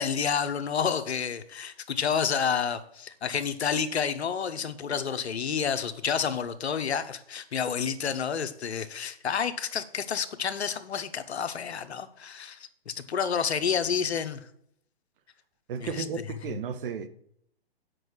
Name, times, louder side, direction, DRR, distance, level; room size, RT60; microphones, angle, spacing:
voice 1, 0.0-14.5 15.8-16.0, left 7 dB, 80° left, 0.9 m, -29 dB
voice 2, 15.7-17.1, right 6 dB, 55° right, 1.0 m, -34 dB
7.8 x 5.5 x 6.2 m
hypercardioid pair, 130°, 32 cm